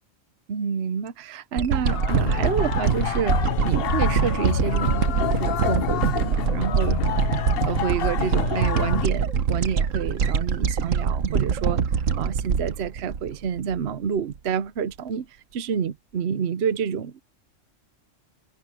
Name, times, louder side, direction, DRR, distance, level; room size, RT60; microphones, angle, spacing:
voice 1, 0.5-7.0 7.6-17.2, right 7 dB, 60° right, 1.0 m, -28 dB
sound 1, 1.6-13.9 14.4-14.5, right 6 dB, 80° right, 1.5 m, -24 dB
sound 2, 1.9-9.1, left 13 dB, 60° left, 0.7 m, -28 dB
omnidirectional pair, 1.3 m